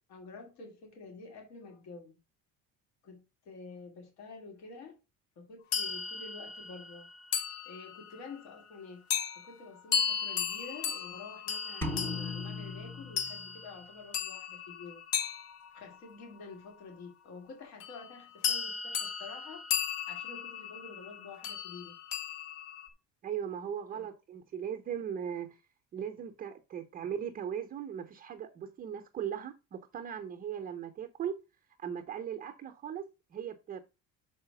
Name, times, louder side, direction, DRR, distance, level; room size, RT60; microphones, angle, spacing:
voice 1, 0.1-2.2 3.0-4.9 5.4-7.1 7.6-9.1 9.3-15.0 15.7-19.6 20.1-22.0 23.9-24.1, left 4 dB, 70° left, 2.5 m, -48 dB
sound 1, 5.7-8.2 9.1-9.4 9.9-16.3 17.8-18.1 18.4-22.9, left 6 dB, 50° left, 1.1 m, -36 dB
sound 2, 11.8-13.8, left 3 dB, 5° left, 0.8 m, -38 dB
voice 2, 23.2-25.6 25.9-31.3 31.8-33.8, right 8 dB, 30° right, 0.7 m, -38 dB
6.1 x 4.9 x 5.7 m
cardioid pair, 165°, 29 cm